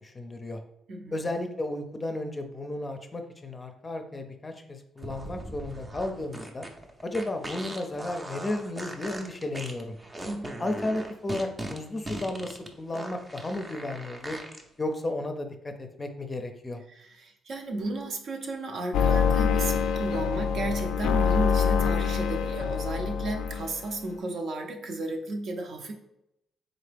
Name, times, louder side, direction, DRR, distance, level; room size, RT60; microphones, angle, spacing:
voice 1, 0.0-0.6 1.1-6.7 7.0-10.0 10.6-14.4 14.8-16.8, left 2 dB, 25° left, 6 dB, 0.5 m, -33 dB
voice 2, 0.9-1.2 10.2-10.6 16.9-25.9, right 2 dB, 65° right, 3 dB, 0.7 m, -33 dB
sound 1, 5.0-14.6, right 1 dB, 20° right, 0.5 m, -39 dB
sound 2, 18.9-23.8, left 6 dB, 85° left, 0.3 m, -25 dB
3.9 x 2.8 x 3.4 m, 0.81 s
cardioid pair, 90°, 0 cm